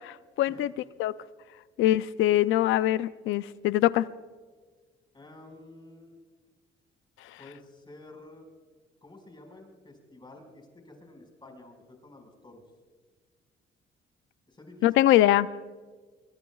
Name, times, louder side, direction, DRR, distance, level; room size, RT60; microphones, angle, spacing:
voice 1, 0.0-0.7 1.0-1.1 1.8-4.1 14.8-15.7, left 14 dB, 85° left, 16 dB, 0.5 m, -23 dB
voice 2, 5.1-6.1 7.4-8.4 9.0-12.6 14.5-15.1, left 2 dB, 25° left, 3 dB, 5.2 m, -50 dB
24.5 x 23.5 x 2.4 m, 1.4 s
cardioid pair, 90°, 20 cm